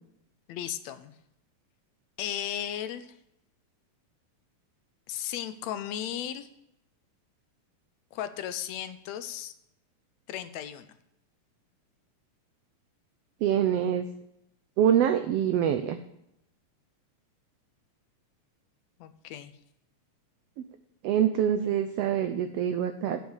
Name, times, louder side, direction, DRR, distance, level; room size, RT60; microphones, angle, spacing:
voice 1, 0.5-1.1 2.2-3.1 5.1-6.5 8.1-9.5 10.3-11.0 19.0-19.5, left 10 dB, 75° left, 11 dB, 1.8 m, -35 dB
voice 2, 13.4-14.1 14.8-16.0 21.0-23.2, right 9 dB, 85° right, 8 dB, 1.3 m, -25 dB
8.3 x 8.2 x 6.2 m, 0.80 s
omnidirectional pair, 3.5 m